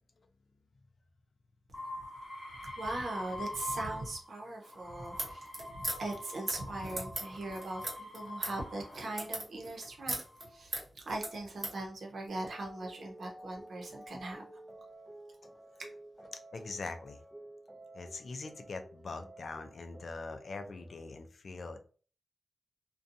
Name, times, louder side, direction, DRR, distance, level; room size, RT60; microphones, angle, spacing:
sound 1, 1.7-4.3 4.6-9.2 9.9-10.5, left 1 dB, 30° left, 0.8 m, -44 dB
voice 1, 2.8-10.2 10.5-14.6, right 2 dB, 85° right, 0 dB, 0.8 m, -40 dB
sound 2, 5.2-11.8, right 1 dB, 50° right, 1.0 m, -39 dB
sound 3, 12.3-21.1, right 1 dB, 10° right, 0.5 m, -52 dB
voice 2, 16.5-17.2 17.9-21.8, left 3 dB, 65° left, 7 dB, 0.4 m, -42 dB
2.6 x 2.2 x 2.6 m, 0.39 s
wide cardioid pair, 120°, 0 cm